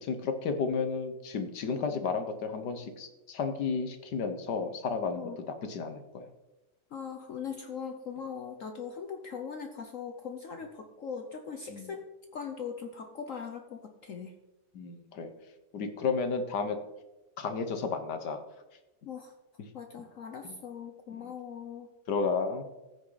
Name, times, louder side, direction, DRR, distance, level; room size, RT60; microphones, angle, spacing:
voice 1, 0.0-6.3 11.7-11.9 14.7-15.3 15.7-16.8 17.4-18.4 20.4-20.5 21.2-21.3 22.1-22.6, left 5 dB, 75° left, 8 dB, 1.8 m, -32 dB
voice 2, 6.9-12.0 12.3-14.3 19.0-19.3 19.7-21.9, left 6 dB, 55° left, 6 dB, 1.1 m, -40 dB
14.5 x 9.5 x 4.0 m, 1.0 s
omnidirectional pair, 1.8 m